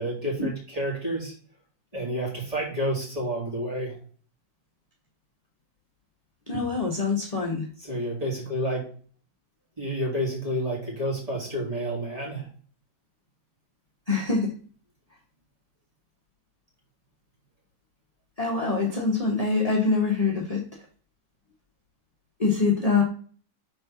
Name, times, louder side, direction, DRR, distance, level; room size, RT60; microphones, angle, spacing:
voice 1, 0.0-1.3 1.9-4.0 7.8-8.8 9.8-12.5, equal, 20° right, -4 dB, 2.7 m, -29 dB
voice 2, 6.5-7.6 14.1-14.5 18.4-20.6 22.4-23.0, left 4 dB, 25° left, -1 dB, 1.1 m, -24 dB
4.4 x 4.3 x 5.8 m, 0.42 s
omnidirectional pair, 1.8 m